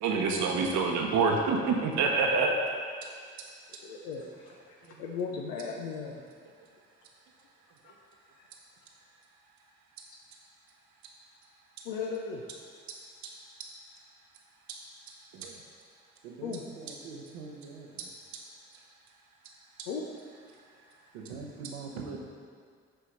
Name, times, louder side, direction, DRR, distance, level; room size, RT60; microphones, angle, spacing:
voice 1, 0.0-2.5 15.4-15.5, right 4 dB, 65° right, 1 dB, 0.9 m, -26 dB
voice 2, 3.8-6.2 8.4-8.5 11.8-12.4 16.4-16.6 19.9-20.0, left 5 dB, 85° left, -1 dB, 0.6 m, -37 dB
voice 3, 16.2-18.1 21.1-22.2, right 4 dB, 85° right, 0 dB, 0.9 m, -43 dB
6.8 x 4.6 x 5.4 m, 2.1 s
hypercardioid pair, 50°, 32 cm